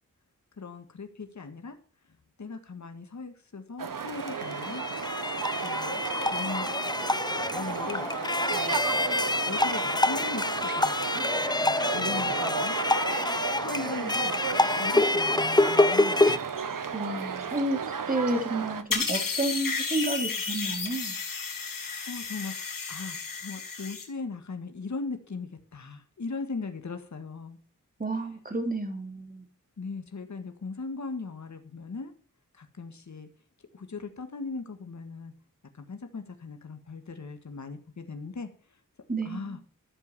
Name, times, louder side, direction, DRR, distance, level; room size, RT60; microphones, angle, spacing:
voice 1, 0.6-1.8 2.4-4.8 5.6-6.7 7.5-8.1 8.5-9.1 9.5-11.2 11.5-12.8 13.4-14.4 14.7-16.2 21.6-27.6 29.8-32.1 32.5-33.3 33.7-35.3 35.7-38.5 39.3-39.6, left 4 dB, 60° left, 7 dB, 1.9 m, -39 dB
sound 1, 3.8-18.8, right 6 dB, 80° right, 1.2 m, -34 dB
sound 2, 4.0-16.4, left 2 dB, 15° left, 0.5 m, -27 dB
voice 2, 16.9-17.8 18.1-21.1 28.0-29.4 39.1-39.6, right 2 dB, 25° right, 4 dB, 3.7 m, -30 dB
sound 3, 18.9-24.0, left 5 dB, 85° left, 3.0 m, -32 dB
13.5 x 7.7 x 7.0 m, 0.39 s
wide cardioid pair, 65°, 32 cm